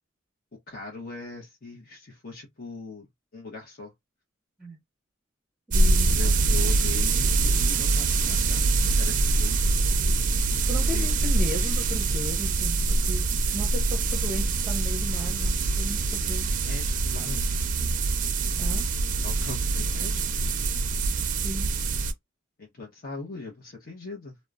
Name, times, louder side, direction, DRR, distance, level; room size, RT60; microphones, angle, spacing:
voice 1, 0.7-3.1 3.3-3.9 6.1-10.2 10.9-11.6 16.6-17.5 19.2-20.2 22.6-24.4, left 3 dB, 50° left, 0.8 m, -41 dB
voice 2, 5.7-6.2 10.0-10.1 10.6-16.5 18.6-18.9 21.4-21.7, equal, 5° right, 0.7 m, -36 dB
sound 1, 5.7-22.1, right 3 dB, 40° right, 0.4 m, -24 dB
2.9 x 2.0 x 2.4 m
head